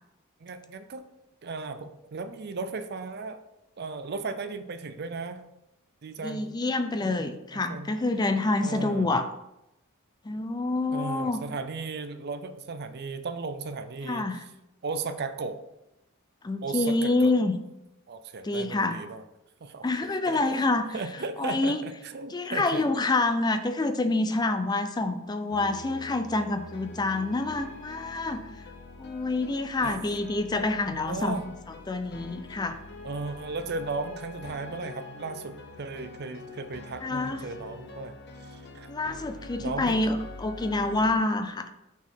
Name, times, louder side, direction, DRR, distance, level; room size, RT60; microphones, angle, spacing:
voice 1, 0.4-1.0 1.4-3.4 3.8-5.4 6.0-6.5 7.0-8.0 8.6-9.1 10.9-14.3 14.8-15.6 16.6-17.3 18.1-19.2 19.6-22.8 29.8-30.0 30.9-31.4 33.0-38.9 39.6-40.1, right 4 dB, 50° right, 10 dB, 0.5 m, -36 dB
voice 2, 6.2-9.3 10.3-11.4 14.0-14.4 16.4-17.5 18.4-19.0 19.8-20.8 21.4-21.8 22.3-28.4 29.0-31.4 31.9-32.8 37.0-37.4 38.9-41.7, left 2 dB, 20° left, 9 dB, 0.4 m, -27 dB
sound 1, 25.5-41.1, left 2 dB, 50° left, 0.8 m, -45 dB
6.1 x 4.3 x 5.6 m, 0.88 s
head